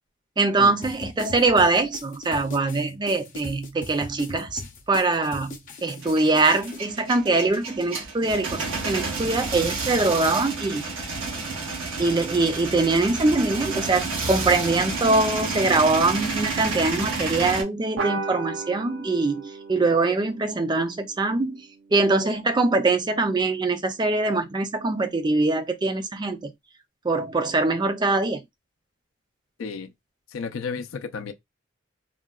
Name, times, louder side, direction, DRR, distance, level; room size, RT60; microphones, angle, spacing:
voice 1, 0.4-4.6 4.9-5.6 5.8-10.9 12.0-21.6 21.9-26.5 27.0-28.4, right 3 dB, 20° right, 0.4 m, -23 dB
sound 1, 0.8-6.8, left 2 dB, 45° left, 0.6 m, -40 dB
Male speech man speaking / Vehicle / Engine starting, 6.0-17.6, right 3 dB, 85° right, 0.9 m, -30 dB
sound 2, 18.0-22.9, right 4 dB, 70° right, 0.6 m, -36 dB
voice 2, 29.6-29.9 30.3-31.3, left 5 dB, 90° left, 0.4 m, -32 dB
3.6 x 2.2 x 2.3 m
head